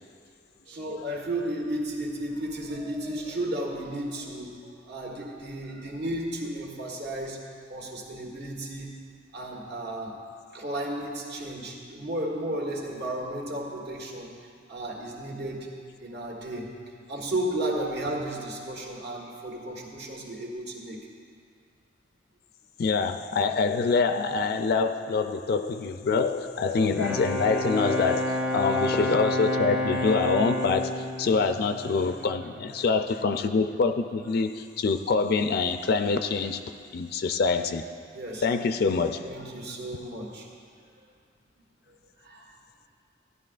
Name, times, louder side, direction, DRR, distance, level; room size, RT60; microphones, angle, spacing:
voice 1, 0.7-7.4 7.7-8.9 9.3-10.1 10.5-14.3 14.7-15.7 16.0-16.7 17.1-21.0 28.2-28.5 38.1-38.5 39.2-40.5 42.2-42.6, right 1 dB, 60° right, -1 dB, 1.5 m, -33 dB
voice 2, 22.8-36.6 36.9-37.8 38.4-39.2, left 4 dB, 55° left, 8 dB, 0.4 m, -25 dB
Bowed string instrument, 26.7-32.5, left 1 dB, 5° right, 0.5 m, -30 dB
15.0 x 11.0 x 2.5 m, 2.2 s
head